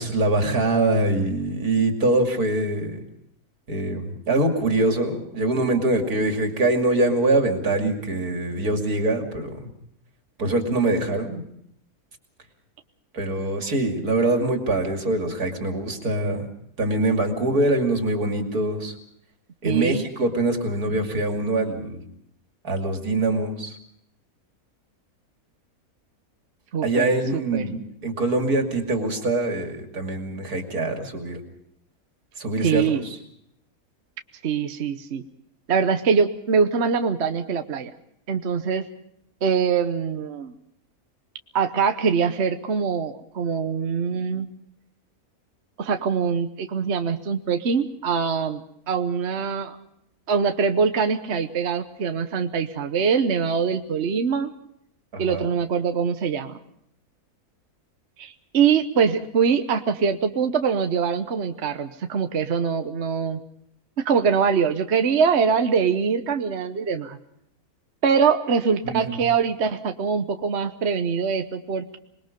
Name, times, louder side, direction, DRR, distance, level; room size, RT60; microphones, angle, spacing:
voice 1, 0.0-3.0 3.7-9.7 10.4-11.4 13.1-16.5 16.8-18.9 19.6-22.0 22.6-23.8 26.8-31.4 32.4-32.9 55.1-55.4 68.8-69.2, right 2 dB, 80° right, 4 dB, 3.1 m, -24 dB
voice 2, 19.6-20.0 26.7-27.6 32.6-33.0 34.4-35.2 35.7-37.9 38.3-38.9 39.4-40.5 41.5-44.5 45.8-48.6 48.9-49.8 50.3-54.5 55.2-56.6 58.2-63.4 64.0-67.2 68.0-72.0, right 6 dB, 50° right, 8 dB, 1.2 m, -23 dB
26.5 x 21.0 x 5.2 m, 0.72 s
omnidirectional pair, 1.6 m